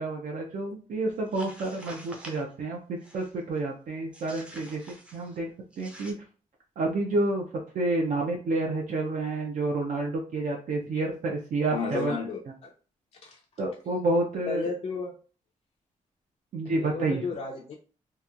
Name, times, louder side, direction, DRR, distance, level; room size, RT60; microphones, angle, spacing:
voice 1, 0.0-5.5 5.8-6.1 6.8-7.4 7.7-12.2 13.6-14.7 16.5-17.2, right 2 dB, 65° right, 0 dB, 0.5 m, -29 dB
sound 1, 1.2-2.5 3.0-3.4 4.1-5.4 5.7-6.1, right 1 dB, 10° right, 0.5 m, -47 dB
voice 2, 11.7-12.7 13.2-13.4 14.5-15.2 16.7-17.7, left 4 dB, 50° left, -1 dB, 0.4 m, -33 dB
2.8 x 2.1 x 2.3 m, 0.38 s
wide cardioid pair, 120°, 14 cm